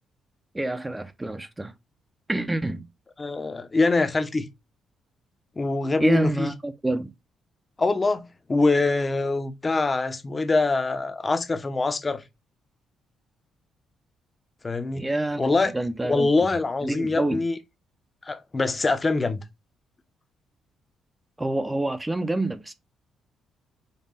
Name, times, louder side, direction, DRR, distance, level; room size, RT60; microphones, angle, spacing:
voice 1, 0.5-1.7 2.3-2.8 6.0-7.1 14.9-16.3 16.8-17.4 21.4-22.7, right 2 dB, 15° right, 0.6 m, -27 dB
voice 2, 3.2-4.5 5.6-6.5 7.8-12.2 14.6-15.1 15.4-15.7 16.0-17.6 18.2-19.4, left 3 dB, 25° left, 0.7 m, -24 dB
5.4 x 2.2 x 4.0 m
cardioid pair, 90°, 0 cm